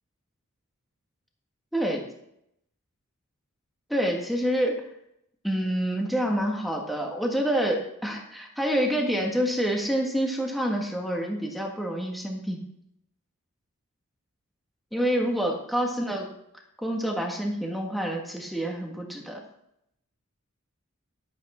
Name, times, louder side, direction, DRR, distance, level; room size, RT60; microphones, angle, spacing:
voice 1, 1.7-2.0 3.9-4.8 5.4-12.6 14.9-16.3 16.8-19.4, equal, ahead, 0 dB, 1.7 m, -27 dB
12.5 x 8.3 x 4.3 m, 0.77 s
head